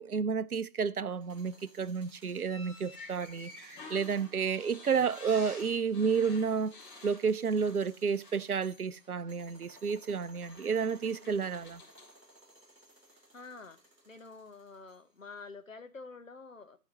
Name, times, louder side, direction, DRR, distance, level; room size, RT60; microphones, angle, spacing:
voice 1, 0.0-6.8 7.0-11.8, right 6 dB, 65° right, 0.7 m, -31 dB
sound 1, 1.1-15.2, right 1 dB, ahead, 1.0 m, -60 dB
sound 2, 2.5-7.9 8.2-8.5 9.7-9.8 10.4-12.2, left 3 dB, 30° left, 3.2 m, -51 dB
voice 2, 11.2-11.5 13.1-13.8 14.0-16.8, left 4 dB, 50° left, 1.2 m, -48 dB
12.5 x 5.1 x 6.2 m
figure-of-eight pair, 155°, 49 cm